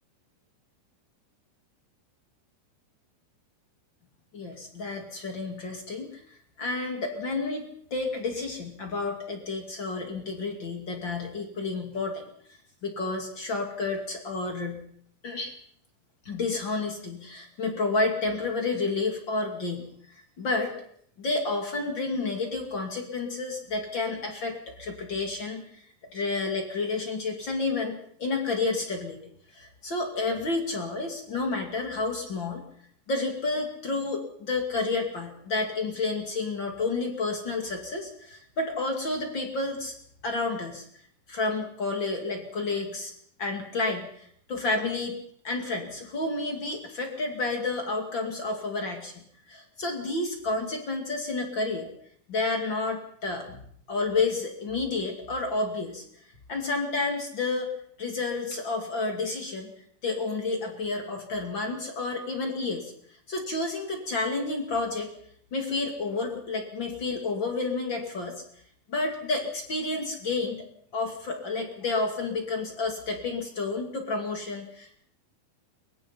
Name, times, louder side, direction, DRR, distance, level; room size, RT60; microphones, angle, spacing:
voice 1, 4.3-12.3 12.8-14.9 15.2-15.5 16.2-20.7 21.2-25.8 26.1-29.2 29.5-32.6 33.1-39.9 40.2-40.9 41.3-43.1 43.4-45.2 45.4-51.9 52.3-56.0 56.5-59.7 60.0-62.9 63.3-65.1 65.5-68.4 68.9-70.7 70.9-75.0, left 3 dB, 35° left, 3 dB, 1.9 m, -30 dB
22.5 x 20.5 x 5.6 m, 0.64 s
omnidirectional pair, 5.9 m